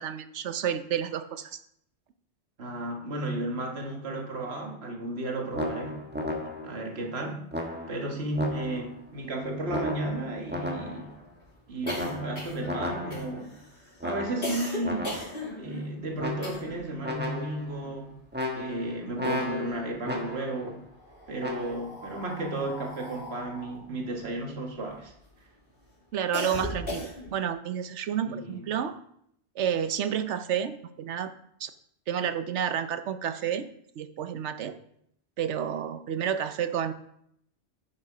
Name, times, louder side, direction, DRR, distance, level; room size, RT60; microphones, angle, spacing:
voice 1, 0.0-1.6 26.1-28.9 29.6-31.3 31.6-31.7 32.1-33.7 34.0-34.7 35.4-36.9, right 8 dB, 90° right, 10 dB, 1.0 m, -30 dB
voice 2, 2.6-6.0 6.6-7.5 7.9-11.1 11.7-13.5 14.0-15.2 15.6-18.1 18.5-20.8 21.3-25.1 28.2-28.7, right 2 dB, 65° right, 2 dB, 1.8 m, -33 dB
sound 1, 5.5-6.8 7.5-9.0 9.7-11.2 11.8-13.4 14.0-15.4 16.2-16.8 17.0-17.8 18.3-20.6 21.4-21.7, left 1 dB, 10° right, 1.2 m, -34 dB
sound 2, 8.7-8.8 9.1-9.2 9.5-17.0 17.2-18.8 19.1-20.1 20.8-25.3 25.7-27.5, left 1 dB, 55° left, 3.1 m, -39 dB
9.6 x 6.5 x 5.0 m, 0.72 s
omnidirectional pair, 1.2 m